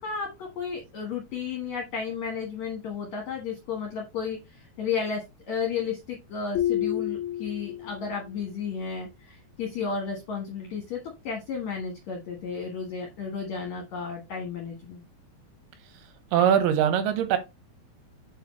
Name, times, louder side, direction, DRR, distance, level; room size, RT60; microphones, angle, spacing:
voice 1, 0.0-11.0 11.2-15.0, left 6 dB, 60° left, 2.0 m, -33 dB
sound 1, 6.5-8.2, left 12 dB, 90° left, 1.6 m, -29 dB
voice 2, 16.3-17.4, right 9 dB, 85° right, 2.9 m, -21 dB
7.9 x 4.6 x 3.0 m
omnidirectional pair, 4.6 m